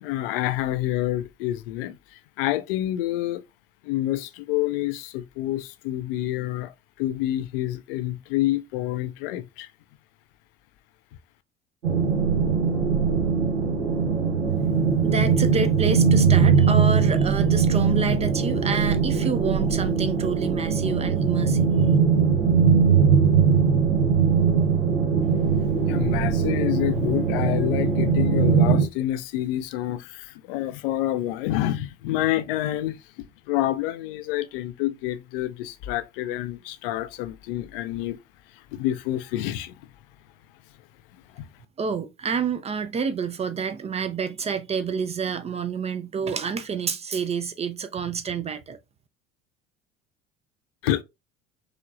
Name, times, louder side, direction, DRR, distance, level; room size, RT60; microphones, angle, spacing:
voice 1, 0.0-3.4 3.8-9.7 25.9-33.0 33.5-38.2 38.7-39.7 41.4-41.5 50.8-51.0, left 14 dB, 55° left, 0.5 m, -28 dB
sound 1, 11.8-28.8, right 6 dB, 80° right, 0.9 m, -21 dB
voice 2, 15.0-21.7 41.8-48.8, right 5 dB, 20° right, 0.4 m, -28 dB
4.9 x 2.9 x 2.4 m
figure-of-eight pair, 60°, 33 cm